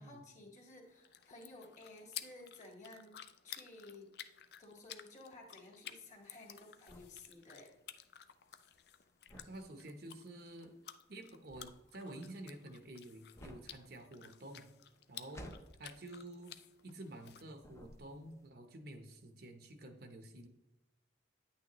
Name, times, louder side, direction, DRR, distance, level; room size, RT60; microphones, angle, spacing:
voice 1, 0.0-3.1 3.4-4.1 4.6-7.7 15.2-15.5, left 2 dB, 40° left, 1 dB, 1.8 m, -54 dB
sound 1, 0.8-17.4, left 10 dB, 60° left, 0.5 m, -54 dB
sound 2, 6.1-17.3 17.6-18.4, equal, 15° left, 0.6 m, -57 dB
voice 2, 9.3-10.7 11.1-14.7 15.1-15.5 15.8-16.6 16.8-20.5, right 1 dB, 55° right, 6 dB, 0.9 m, -50 dB
9.8 x 8.6 x 3.0 m, 0.98 s
head